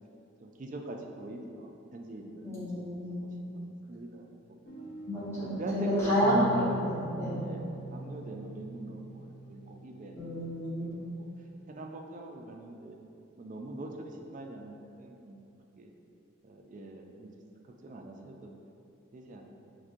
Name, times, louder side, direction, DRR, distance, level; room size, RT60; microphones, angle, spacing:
voice 1, 0.4-2.6 3.0-4.8 5.4-6.7 7.3-7.7 7.9-10.2 10.7-11.3 11.7-13.0 13.4-15.4 15.8-15.9 16.4-17.3 17.6-18.5 19.1-19.6, right 2 dB, 35° right, 1 dB, 0.3 m, -43 dB
voice 2, 2.4-3.4 5.1-7.4 10.1-10.9, equal, 15° left, -11 dB, 1.1 m, -30 dB
sound 1, 4.7-10.5, equal, 50° left, 0.5 m, -39 dB
5.8 x 2.6 x 2.5 m, 2.8 s
head